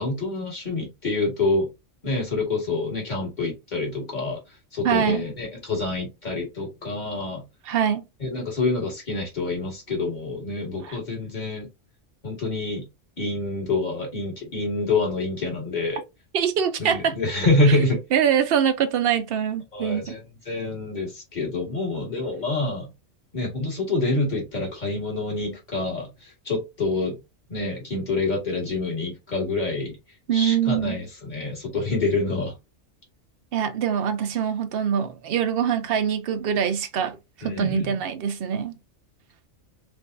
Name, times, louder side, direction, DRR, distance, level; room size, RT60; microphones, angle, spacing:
voice 1, 0.0-1.7 2.0-4.4 4.7-7.4 8.2-11.7 12.2-12.8 13.2-16.0 16.8-18.0 19.7-22.9 23.3-27.1 27.5-30.0 30.3-32.5 37.4-38.0, left 2 dB, 35° left, 1.6 m, -27 dB
voice 2, 4.8-5.3 7.7-8.0 10.8-11.0 16.3-17.2 18.1-20.2 30.3-31.0 33.5-37.2 37.4-38.7, right 8 dB, 60° right, 0.7 m, -24 dB
3.4 x 3.1 x 2.5 m
omnidirectional pair, 1.3 m